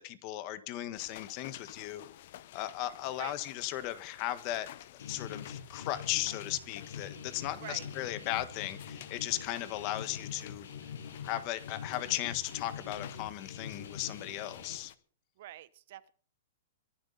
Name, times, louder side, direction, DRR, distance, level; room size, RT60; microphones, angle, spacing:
voice 1, 0.0-2.0 2.5-4.7 5.0-10.7 11.2-14.9, left 14 dB, 35° left, 1.5 m, -36 dB
sound 1, 0.9-15.0, left 13 dB, 55° left, 1.0 m, -53 dB
Guitar, 5.0-14.8, left 7 dB, 85° left, 6.0 m, -44 dB
voice 2, 15.4-16.1, right 14 dB, 55° right, 0.9 m, -46 dB
23.5 x 11.0 x 4.2 m
hypercardioid pair, 150°, 0 cm